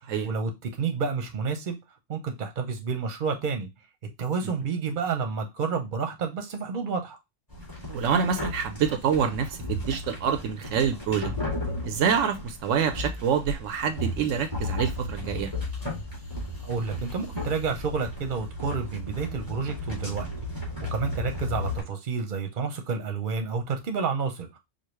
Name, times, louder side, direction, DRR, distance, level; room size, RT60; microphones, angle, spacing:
voice 1, 0.2-1.7 2.1-3.7 4.0-7.2 16.6-20.3 20.9-24.6, right 5 dB, 45° right, 0.9 m, -30 dB
sound 1, 7.5-21.8, left 1 dB, 15° left, 2.1 m, -34 dB
voice 2, 7.9-11.3 11.8-15.5, right 7 dB, 80° right, 1.0 m, -26 dB
4.9 x 2.4 x 3.1 m
omnidirectional pair, 1.3 m